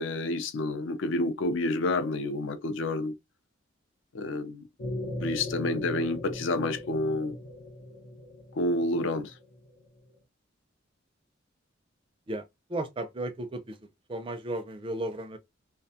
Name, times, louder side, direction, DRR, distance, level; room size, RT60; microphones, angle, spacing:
voice 1, 0.0-3.1 4.1-4.6 5.2-7.4 8.5-9.3, left 2 dB, 65° left, 0.4 m, -29 dB
sound 1, 4.8-9.9, left 1 dB, 90° left, 0.8 m, -39 dB
voice 2, 12.7-13.8 14.1-15.4, right 1 dB, 25° right, 0.4 m, -34 dB
2.3 x 2.2 x 2.7 m
head